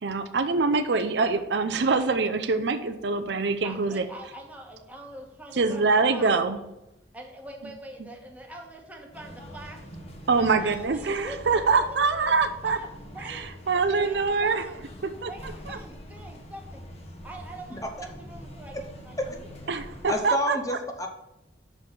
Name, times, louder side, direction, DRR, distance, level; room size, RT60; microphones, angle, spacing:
voice 1, 0.0-4.0 5.5-6.6 10.3-12.8 13.2-14.6 15.2-15.3 15.7-15.8 19.7-20.8, right 4 dB, 65° right, 9 dB, 0.6 m, -24 dB
voice 2, 3.6-6.4 7.1-9.8 10.3-12.4 12.6-12.9 13.1-13.5 14.0-14.9 15.3-16.8 17.2-19.6, right 1 dB, 10° right, 0 dB, 1.3 m, -43 dB
sound 1, 9.1-20.2, equal, 35° left, 1.1 m, -44 dB
voice 3, 20.1-21.1, equal, 20° left, 4 dB, 0.7 m, -28 dB
6.1 x 5.3 x 5.8 m, 0.91 s
head